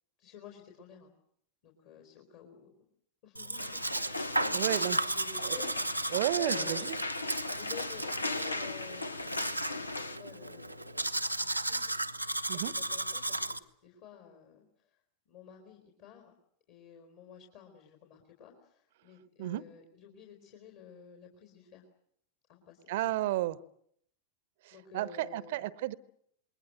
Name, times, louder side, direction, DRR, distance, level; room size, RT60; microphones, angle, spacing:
voice 1, 0.2-1.1 1.6-2.9 3.2-7.0 7.6-11.9 12.5-15.0 15.3-16.3 16.7-21.8 22.5-22.9 24.7-25.7, left 7 dB, 45° left, 2 dB, 4.1 m, -52 dB
Domestic sounds home sounds, 3.4-13.6, right 1 dB, 90° right, 1.0 m, -35 dB
sound 1, 3.6-10.2, left 2 dB, 80° left, 1.0 m, -38 dB
voice 2, 4.5-5.0 5.4-5.6 6.1-7.0 12.5-12.7 19.4-19.6 22.9-23.6 24.6-25.9, right 14 dB, 55° right, 19 dB, 1.0 m, -32 dB
27.5 x 21.5 x 7.8 m, 0.71 s
figure-of-eight pair, 90°, 0 cm